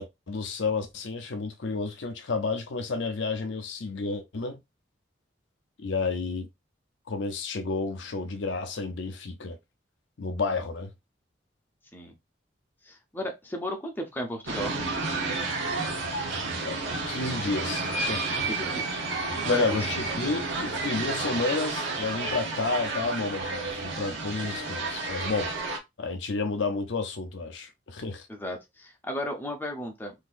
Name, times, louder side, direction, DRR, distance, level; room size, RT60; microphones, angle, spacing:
voice 1, 0.0-4.6 5.8-6.5 7.1-9.6 10.2-10.9 16.6-18.5 19.4-25.5 26.0-28.2, left 3 dB, 75° left, 0.6 m, -31 dB
voice 2, 12.9-14.7 18.5-19.0 19.5-19.8 28.3-30.1, equal, 10° left, 0.7 m, -34 dB
sound 1, 14.4-25.8, right 3 dB, 85° right, 1.0 m, -31 dB
3.9 x 2.8 x 2.5 m
head